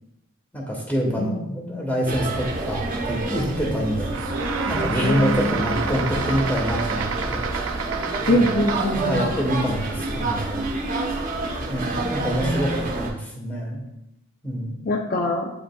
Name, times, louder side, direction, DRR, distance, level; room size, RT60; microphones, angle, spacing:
voice 1, 0.5-4.1 4.7-7.4 8.3-8.5 8.9-10.7 11.6-13.8 14.4-14.8, equal, 10° left, -1 dB, 1.2 m, -26 dB
sound 1, 2.1-13.1, right 2 dB, 45° right, 0.8 m, -28 dB
sound 2, 4.1-9.1, right 6 dB, 85° right, 0.5 m, -30 dB
voice 2, 4.9-5.6 8.3-9.3 12.4-12.9 14.9-15.5, left 1 dB, 45° left, 1 dB, 0.5 m, -23 dB
8.4 x 4.9 x 2.3 m, 0.86 s
head